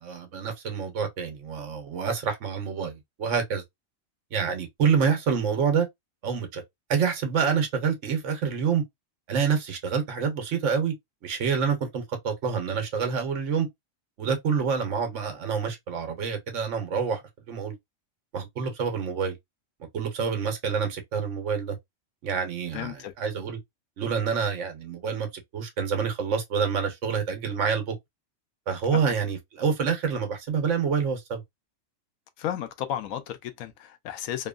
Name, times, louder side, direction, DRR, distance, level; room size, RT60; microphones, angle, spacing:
voice 1, 0.0-3.6 4.3-5.9 6.2-6.6 6.9-8.8 9.3-10.9 11.2-13.7 14.2-17.2 17.5-17.8 18.3-19.3 19.9-21.8 22.2-23.6 24.0-25.3 25.5-27.9 28.7-31.4, right 6 dB, 65° right, 1.2 m, -27 dB
voice 2, 22.7-23.1 28.9-29.0 32.4-34.5, left 10 dB, 85° left, 1.0 m, -33 dB
2.9 x 2.2 x 2.3 m
omnidirectional pair, 1.4 m